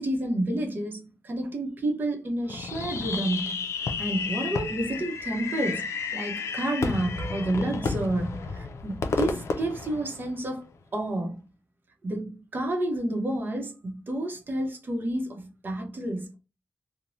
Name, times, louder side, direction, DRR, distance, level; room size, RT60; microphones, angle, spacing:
voice 1, 0.0-10.7 10.9-11.4 12.0-16.4, right 1 dB, 45° right, 0.7 m, -30 dB
Fireworks, 2.5-10.6, left 4 dB, 85° left, 0.4 m, -32 dB
3.0 x 2.1 x 2.6 m
wide cardioid pair, 155°, 5 cm